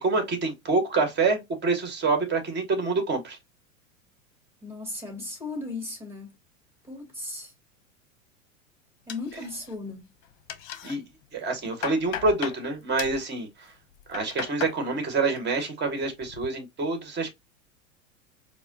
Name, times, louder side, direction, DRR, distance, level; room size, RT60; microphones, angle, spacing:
voice 1, 0.0-3.4 10.8-11.0 11.3-13.5 14.1-17.3, right 3 dB, 25° right, 1.5 m, -26 dB
voice 2, 4.6-6.3 6.8-7.5 9.1-10.1, left 2 dB, 5° right, 2.3 m, -36 dB
sound 1, 9.1-9.9 10.2-11.0 11.4-12.6 13.0-13.3 13.9-14.8 15.2-15.7 16.0-16.5, left 10 dB, 40° left, 0.8 m, -37 dB
4.7 x 2.2 x 2.8 m
hypercardioid pair, 95°, 41 cm